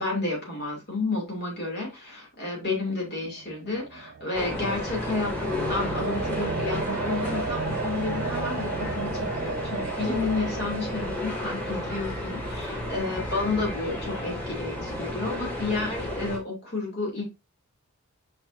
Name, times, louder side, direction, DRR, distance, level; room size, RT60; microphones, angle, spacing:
voice 1, 0.0-17.2, left 3 dB, 45° left, 3.1 m, -31 dB
sound 1, 3.3-13.5, right 5 dB, 50° right, 0.3 m, -35 dB
sound 2, 4.3-16.4, left 1 dB, 5° left, 1.9 m, -32 dB
6.3 x 6.0 x 2.7 m
head